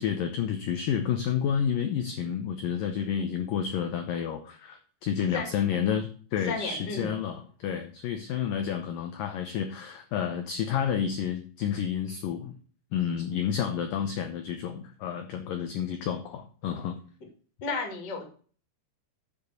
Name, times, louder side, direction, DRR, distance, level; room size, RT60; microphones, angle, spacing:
voice 1, 0.0-12.5 12.9-17.0, left 8 dB, 85° left, 7 dB, 1.9 m, -30 dB
voice 2, 5.3-5.6 6.5-7.1 17.6-18.3, left 4 dB, 30° left, 2 dB, 2.3 m, -33 dB
7.6 x 6.9 x 6.7 m, 0.42 s
omnidirectional pair, 5.2 m